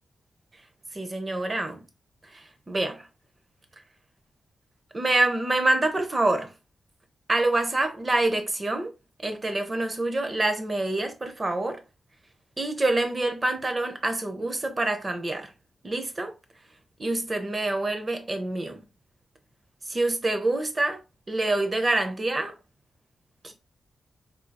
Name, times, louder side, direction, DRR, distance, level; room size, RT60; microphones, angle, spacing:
voice 1, 0.9-1.8 2.3-3.1 4.9-6.5 7.3-8.9 9.2-11.8 12.6-15.5 15.8-16.3 17.0-18.8 19.9-21.0 21.3-22.5 23.4-23.5, right 2 dB, 30° right, 0.7 m, -26 dB
3.7 x 2.7 x 2.2 m
cardioid pair, 80°, 0 cm